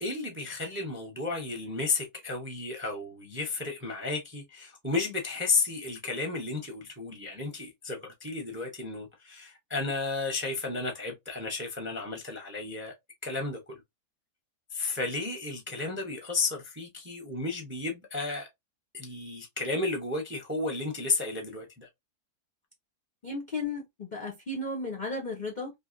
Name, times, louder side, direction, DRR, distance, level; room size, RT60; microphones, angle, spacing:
voice 1, 0.0-12.9 13.2-13.8 14.7-18.5 18.9-21.9, left 3 dB, 15° right, 0.5 m, -33 dB
voice 2, 23.2-25.7, left 2 dB, 50° left, 0.5 m, -34 dB
3.3 x 2.7 x 2.5 m
omnidirectional pair, 1.7 m